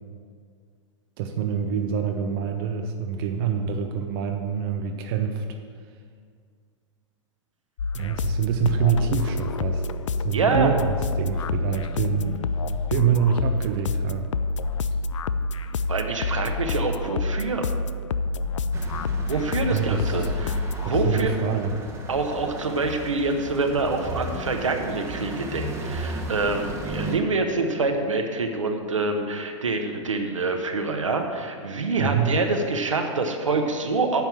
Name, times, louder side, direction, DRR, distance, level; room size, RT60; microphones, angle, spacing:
voice 1, 1.2-5.4 7.9-9.8 10.2-12.4 12.9-14.3 19.7-20.3 20.8-21.8 32.0-32.3, right 7 dB, 45° right, 5 dB, 0.7 m, -26 dB
sound 1, 7.8-21.3, left 3 dB, 75° left, 0.4 m, -28 dB
voice 2, 10.3-10.7 15.9-17.7 19.3-21.3 22.1-34.2, right 3 dB, 80° right, 4 dB, 1.2 m, -26 dB
sound 2, 18.7-27.2, right 1 dB, 15° right, 1.1 m, -35 dB
9.4 x 5.9 x 7.2 m, 2.1 s
figure-of-eight pair, 100°, 16 cm